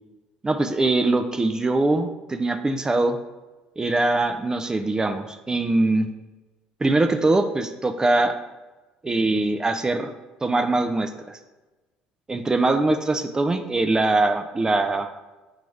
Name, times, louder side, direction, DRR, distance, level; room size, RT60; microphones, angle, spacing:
voice 1, 0.4-3.2 3.8-6.1 6.8-8.4 9.0-10.1 10.4-11.4 12.3-15.1, right 2 dB, 20° right, 8 dB, 0.4 m, -22 dB
4.0 x 3.5 x 3.2 m, 1.1 s
hypercardioid pair, 65°, 3 cm